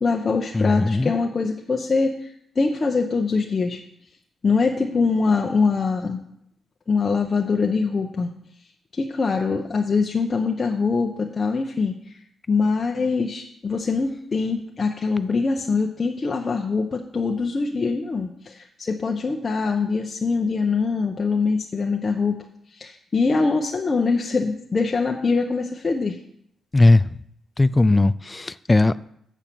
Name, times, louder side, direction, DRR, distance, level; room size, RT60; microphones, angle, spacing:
voice 1, 0.0-3.8 4.4-6.2 6.9-8.3 8.9-11.9 12.5-22.4 22.7-26.2, left 4 dB, 40° left, 1 dB, 0.9 m, -23 dB
voice 2, 0.5-1.1 26.7-27.1 27.6-29.0, left 2 dB, 20° left, 15 dB, 0.4 m, -18 dB
7.3 x 7.1 x 6.9 m, 0.73 s
supercardioid pair, 60°, 0 cm